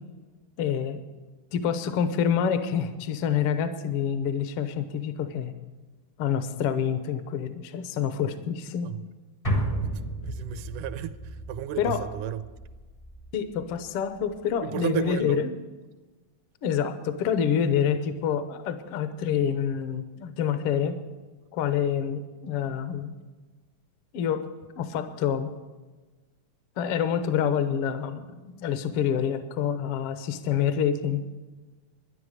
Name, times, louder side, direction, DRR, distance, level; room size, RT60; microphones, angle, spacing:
voice 1, 0.6-1.0 1.5-5.5 6.2-8.9 11.8-12.0 13.3-15.6 16.6-21.0 21.5-23.1 24.1-24.5 24.8-25.5 26.8-28.2 28.6-31.2, left 8 dB, 70° left, 1.4 m, -27 dB
sound 1, 9.4-13.9 14.2-14.3, right 1 dB, 55° left, 0.3 m, -33 dB
voice 2, 9.8-12.4 14.6-15.4, right 10 dB, 85° right, 2.1 m, -33 dB
12.5 x 10.5 x 6.5 m
omnidirectional pair, 3.6 m